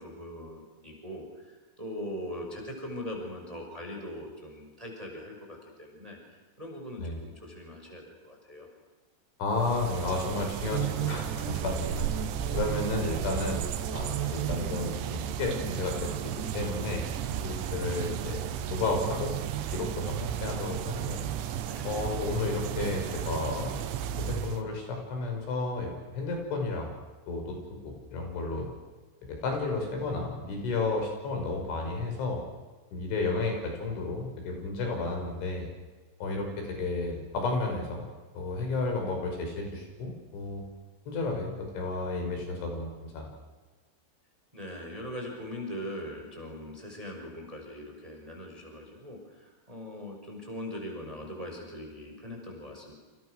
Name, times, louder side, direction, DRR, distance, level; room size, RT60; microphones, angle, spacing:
voice 1, 0.0-6.2 6.6-8.7 21.6-22.0 44.5-49.2 49.7-52.9, left 1 dB, 5° right, 1 dB, 5.4 m, -41 dB
voice 2, 9.4-11.9 12.5-16.1 16.5-17.1 17.4-18.4 18.7-19.4 19.7-21.2 21.8-23.8 24.2-26.9 27.3-28.7 29.3-32.4 32.9-35.7 36.2-38.1 38.3-40.6 41.1-43.3, left 3 dB, 75° left, 2 dB, 8.1 m, -32 dB
sound 1, 9.5-24.6, right 10 dB, 90° right, 3.8 m, -34 dB
sound 2, 10.7-23.5, right 9 dB, 65° right, 4.1 m, -38 dB
29.5 x 28.0 x 6.5 m, 1.3 s
omnidirectional pair, 5.5 m